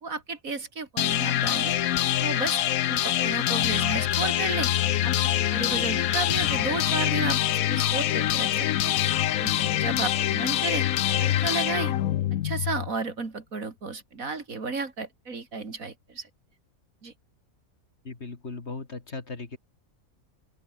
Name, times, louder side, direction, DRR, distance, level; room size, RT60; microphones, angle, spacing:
voice 1, 0.0-1.7 2.2-2.6 2.9-4.7 5.0-5.1 5.5-8.9 9.4-10.9 11.2-11.9 12.3-16.3 17.0-17.1, right 4 dB, 75° right, 3.3 m, -33 dB
sound 1, 1.0-12.9, left 12 dB, 80° left, 1.2 m, -25 dB
voice 2, 18.0-19.6, left 3 dB, 50° left, 2.7 m, -37 dB
open air
omnidirectional pair, 1.5 m